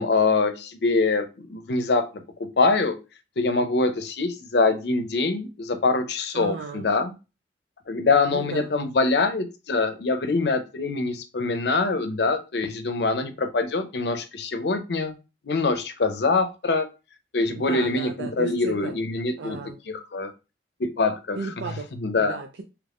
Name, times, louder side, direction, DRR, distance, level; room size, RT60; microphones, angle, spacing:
voice 1, 0.0-2.1 2.6-3.0 3.4-7.1 7.9-15.2 15.4-16.9 17.3-19.6 19.9-20.3 20.8-21.4 22.0-22.4, left 3 dB, 70° left, 8 dB, 0.6 m, -24 dB
voice 2, 6.3-6.8 8.3-8.7 17.5-18.9 19.4-19.7 21.4-21.9 22.1-22.6, right 4 dB, 85° right, 4 dB, 0.4 m, -34 dB
3.5 x 3.0 x 2.4 m, 0.29 s
head